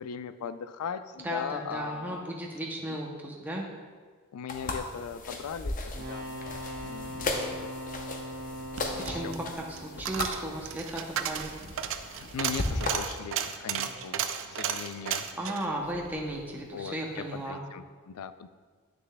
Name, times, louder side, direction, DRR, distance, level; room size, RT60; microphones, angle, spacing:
voice 1, 0.0-2.2 4.3-6.4 6.8-7.8 8.9-9.4 10.2-10.3 12.1-15.3 16.5-18.5, left 7 dB, 80° left, 12 dB, 0.4 m, -39 dB
voice 2, 1.2-3.7 9.0-11.5 15.4-17.6, right 1 dB, 10° right, -2 dB, 0.6 m, -35 dB
sound 1, 4.5-12.9, left 2 dB, 40° left, 0.7 m, -36 dB
sound 2, 5.9-10.9 13.7-13.8, equal, 45° right, 0.9 m, -41 dB
Coin (dropping), 8.5-17.0 17.3-17.4, right 8 dB, 65° right, 0.4 m, -35 dB
9.3 x 6.6 x 2.2 m, 1.5 s
head